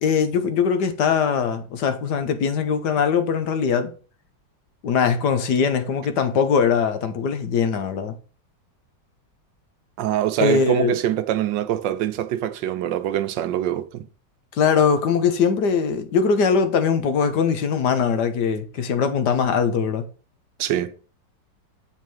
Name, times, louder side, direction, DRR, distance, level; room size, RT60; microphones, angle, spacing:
voice 1, 0.0-3.9 4.8-8.2 10.4-10.9 14.6-20.0, left 6 dB, 70° left, 1.4 m, -21 dB
voice 2, 10.0-14.1 20.6-20.9, right 12 dB, 85° right, 1.4 m, -24 dB
7.4 x 3.6 x 6.2 m
omnidirectional pair, 1.9 m